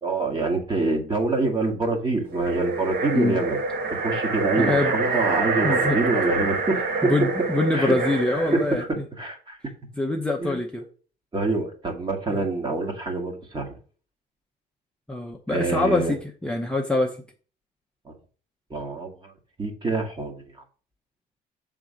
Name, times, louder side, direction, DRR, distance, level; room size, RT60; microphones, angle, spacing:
voice 1, 0.0-3.6 4.0-7.1 7.7-9.6 10.4-10.6 11.3-13.8 15.5-16.1 18.7-19.3 19.6-20.4, right 3 dB, 25° right, 2 dB, 1.9 m, -26 dB
sound 1, 2.3-8.8, right 3 dB, 60° right, 1.6 m, -26 dB
voice 2, 4.6-4.9 5.6-6.0 7.1-8.8 10.0-10.8 12.3-12.4 15.1-17.2, left 2 dB, 5° left, 1 dB, 0.7 m, -24 dB
6.9 x 3.8 x 5.0 m, 0.40 s
cardioid pair, 110°, 17 cm